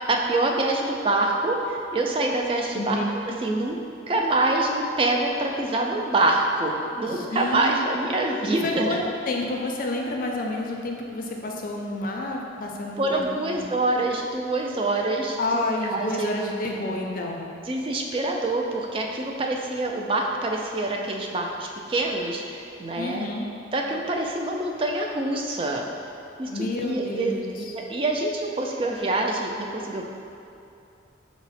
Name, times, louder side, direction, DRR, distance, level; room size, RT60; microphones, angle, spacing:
voice 1, 0.1-3.0 3.4-3.8 4.1-9.0 13.0-16.3 17.7-23.3 23.7-25.9 26.4-30.1, right 2 dB, 30° right, 1 dB, 0.3 m, -26 dB
voice 2, 2.7-3.4 7.0-7.8 8.6-13.7 15.4-17.4 23.0-23.5 26.5-27.7, left 2 dB, 45° left, 0 dB, 0.4 m, -29 dB
5.7 x 2.1 x 4.0 m, 2.7 s
head